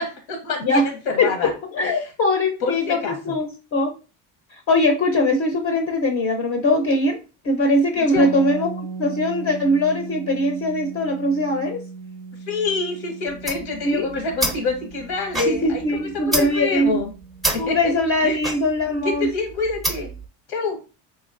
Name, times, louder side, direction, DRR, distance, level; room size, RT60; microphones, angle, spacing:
voice 1, 0.0-1.5 1.8-2.1 2.6-3.4 8.0-8.3 12.5-15.8 16.2-17.1 17.5-17.9 18.2-18.4 19.0-20.1 20.5-20.8, left 4 dB, 85° left, 3 dB, 1.1 m, -26 dB
voice 2, 1.2-3.9 4.5-7.2 7.4-8.7 9.0-11.8 13.8-14.1 15.5-17.0 17.6-19.3, left 1 dB, 40° left, 4 dB, 0.6 m, -21 dB
sound 1, 8.2-17.9, right 5 dB, 50° right, 0.4 m, -37 dB
sound 2, 13.3-20.3, right 1 dB, ahead, 0.5 m, -29 dB
4.0 x 3.0 x 2.5 m, 0.33 s
cardioid pair, 120°, 41 cm